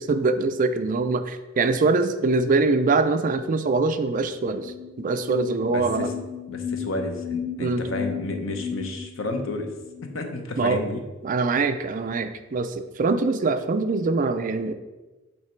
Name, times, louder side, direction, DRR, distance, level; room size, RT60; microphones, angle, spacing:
voice 1, 0.0-6.1 7.6-7.8 10.6-10.8 11.2-14.7, right 3 dB, 40° right, 9 dB, 0.4 m, -23 dB
sound 1, 4.5-10.2, left 7 dB, 10° right, 1.0 m, -34 dB
voice 2, 5.7-6.1 6.5-9.7 10.0-11.0, left 2 dB, 80° left, 5 dB, 0.8 m, -31 dB
7.9 x 2.9 x 4.4 m, 1.2 s
head